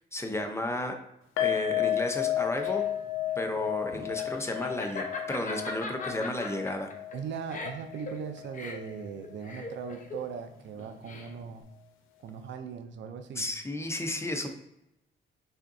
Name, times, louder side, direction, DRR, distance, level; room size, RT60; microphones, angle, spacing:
voice 1, 0.1-1.0 1.4-2.8 3.4-6.9 13.4-14.5, left 1 dB, 15° left, 4 dB, 0.7 m, -33 dB
sound 1, 1.4-8.6 8.8-9.0 9.4-9.5, left 12 dB, 90° left, 0.6 m, -33 dB
Laughter, 2.3-11.6, left 3 dB, 40° left, 0.9 m, -40 dB
voice 2, 7.1-11.6 12.2-13.5, right 7 dB, 70° right, 7 dB, 0.6 m, -39 dB
5.5 x 3.6 x 2.7 m, 0.86 s
cardioid pair, 90°, 20 cm